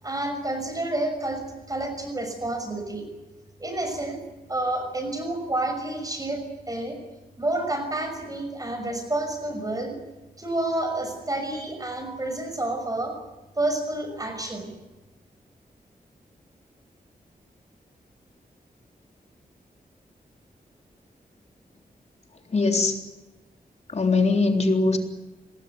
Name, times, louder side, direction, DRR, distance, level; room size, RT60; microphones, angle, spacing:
voice 1, 0.0-3.1 3.6-4.2 4.5-7.0 7.4-10.0 10.4-13.2 13.6-14.7, right 2 dB, 25° right, 5 dB, 5.9 m, -29 dB
voice 2, 22.5-23.0 23.9-25.0, left 3 dB, 45° left, 4 dB, 3.7 m, -21 dB
27.5 x 19.5 x 9.5 m, 1.1 s
wide cardioid pair, 120°, 16 cm